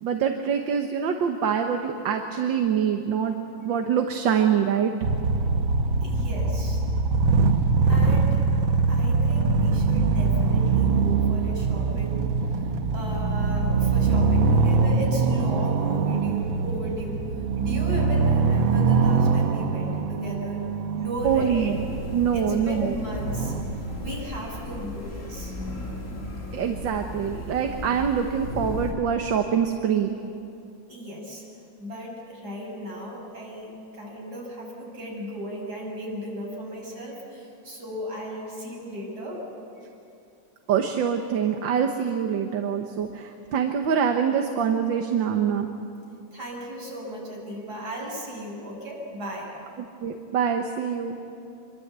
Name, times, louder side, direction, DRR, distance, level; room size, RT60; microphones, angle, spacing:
voice 1, 0.0-3.3 3.7-4.9 21.2-21.8 22.1-22.9 26.5-30.2 40.7-45.7 49.8-51.2, right 7 dB, 75° right, 5 dB, 1.9 m, -25 dB
sound 1, 5.0-24.1, right 4 dB, 90° right, 1.9 m, -23 dB
voice 2, 6.0-6.8 7.9-8.6 8.9-12.3 12.9-17.2 17.6-20.6 20.9-21.7 22.3-23.5 24.0-25.5 30.9-31.4 31.8-39.4 46.3-49.5, equal, 55° right, -2 dB, 6.8 m, -35 dB
sound 2, 21.2-28.9, left 1 dB, 40° left, 3.7 m, -36 dB
26.0 x 23.5 x 8.2 m, 2.6 s
omnidirectional pair, 2.1 m